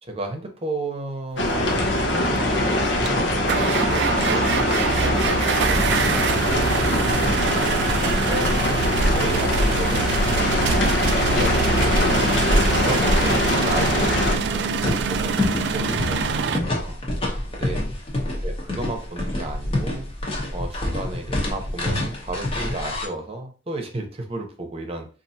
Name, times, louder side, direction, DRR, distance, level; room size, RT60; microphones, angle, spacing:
voice 1, 0.0-6.0 6.3-7.1 7.7-10.5 11.3-12.3 12.8-17.0 17.5-17.9 18.4-20.1 20.5-25.1, right 2 dB, 35° right, 4 dB, 0.8 m, -33 dB
sound 1, 1.4-14.4, left 1 dB, 90° left, 0.8 m, -22 dB
sound 2, 2.4-2.5 3.0-16.6, right 5 dB, 70° right, 0.4 m, -25 dB
sound 3, 7.8-23.1, left 1 dB, 30° left, 0.8 m, -27 dB
4.6 x 2.5 x 2.7 m, 0.37 s
head